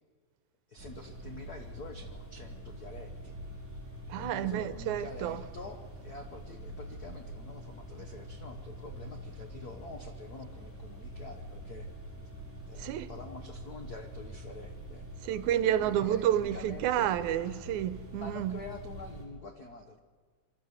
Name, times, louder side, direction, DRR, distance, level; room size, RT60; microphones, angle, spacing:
voice 1, 0.7-3.4 4.1-11.9 12.7-15.0 15.6-17.2 18.2-20.0, left 3 dB, 55° left, 1.0 m, -46 dB
sound 1, 0.8-19.3, right 1 dB, 5° left, 4.6 m, -45 dB
voice 2, 4.1-5.4 12.8-13.1 15.2-18.6, right 11 dB, 85° right, 2.1 m, -30 dB
26.5 x 12.5 x 8.0 m
omnidirectional pair, 3.4 m